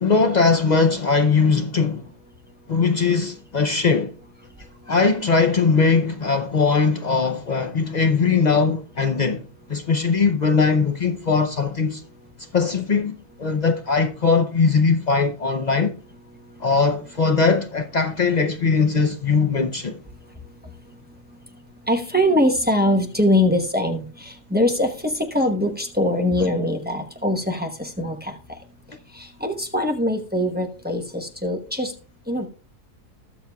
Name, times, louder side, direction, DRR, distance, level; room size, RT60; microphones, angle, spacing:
voice 1, 0.0-2.0 2.7-4.1 4.9-12.0 12.5-15.9 16.6-20.0, left 4 dB, 80° left, 0.4 m, -20 dB
voice 2, 21.9-28.4 29.1-31.9 32.3-32.5, left 1 dB, 10° right, 0.8 m, -22 dB
20.5 x 7.0 x 2.3 m
omnidirectional pair, 1.7 m